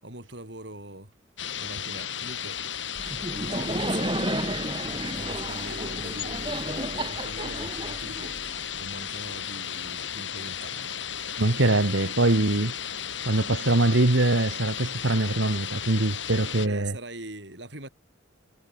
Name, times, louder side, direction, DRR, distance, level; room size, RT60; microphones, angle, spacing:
voice 1, 0.0-1.1 1.6-2.6 3.2-4.6 5.1-10.9 11.7-12.1 16.6-17.9, right 2 dB, 65° right, 8.0 m, -42 dB
sound 1, 1.4-16.7, left 9 dB, 75° left, 7.5 m, -34 dB
Laughter, 3.0-8.8, right 1 dB, 25° right, 4.7 m, -32 dB
voice 2, 11.4-12.7 13.2-16.9, right 2 dB, 90° right, 1.6 m, -23 dB
head